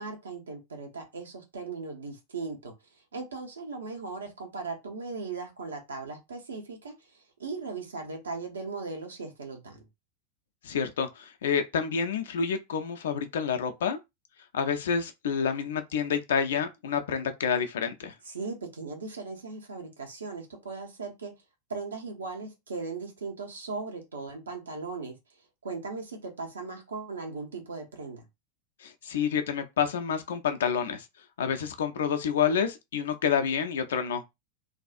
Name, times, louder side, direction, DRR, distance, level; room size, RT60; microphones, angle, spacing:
voice 1, 0.0-2.7 3.1-9.8 18.2-21.3 21.7-25.1 25.6-28.2, right 4 dB, 70° right, 0.8 m, -38 dB
voice 2, 10.6-14.0 14.5-18.1 28.8-31.0 31.4-34.2, left 7 dB, 60° left, 0.5 m, -28 dB
2.6 x 2.3 x 2.5 m
figure-of-eight pair, 90°, 0 cm